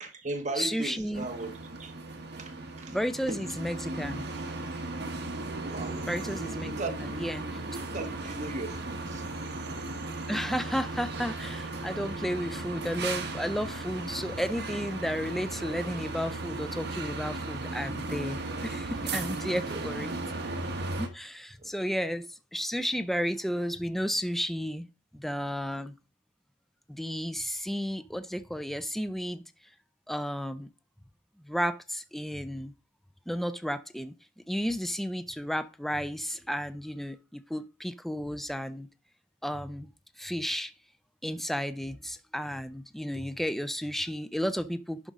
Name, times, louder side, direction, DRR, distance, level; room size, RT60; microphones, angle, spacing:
voice 1, 0.0-1.5 1.8-1.9 2.4-3.0 3.3-3.6 5.6-6.0 6.8-7.1 7.9-9.3 19.7-20.1 21.6-21.7, right 2 dB, 40° right, 1.2 m, -37 dB
voice 2, 0.6-1.3 2.9-4.3 6.1-6.7 7.2-7.6 10.3-20.1 21.0-24.9 25.1-25.9 26.9-29.4 30.1-30.7 31.4-32.7 33.3-34.2 34.5-38.9 39.4-39.9 40.2-40.7 41.2-45.1, equal, ahead, 0.4 m, -33 dB
sound 1, 1.1-21.1, right 2 dB, 65° right, 1.3 m, -36 dB
11.0 x 5.2 x 3.6 m
head